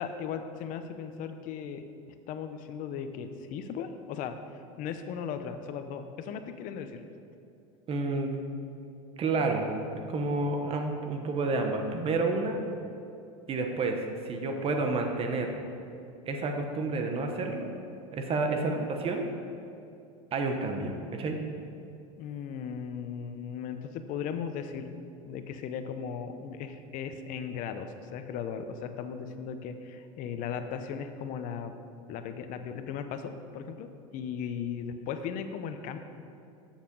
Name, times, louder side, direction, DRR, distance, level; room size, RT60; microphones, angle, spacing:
voice 1, 0.0-1.9 2.3-4.4 4.8-7.0 18.5-18.9 22.2-24.9 25.3-31.7 32.1-36.0, left 7 dB, 50° left, 8 dB, 0.7 m, -37 dB
voice 2, 7.9-8.3 9.2-9.7 10.1-12.6 13.5-15.5 16.3-17.7 18.1-19.3 20.3-21.4, right 3 dB, 35° right, 4 dB, 1.2 m, -30 dB
7.3 x 7.2 x 5.4 m, 2.6 s
supercardioid pair, 120°, 17 cm